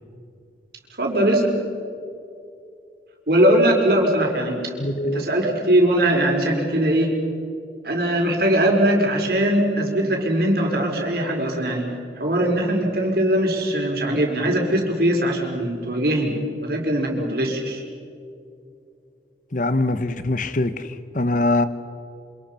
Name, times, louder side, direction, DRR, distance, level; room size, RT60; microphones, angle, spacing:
voice 1, 1.0-1.5 3.3-4.7 5.1-7.2 7.8-11.9 12.2-17.8, right 1 dB, 60° right, 0 dB, 5.2 m, -20 dB
voice 2, 4.8-5.2 19.5-21.7, left 2 dB, 45° left, 12 dB, 1.1 m, -23 dB
27.5 x 27.0 x 5.8 m, 2.5 s
head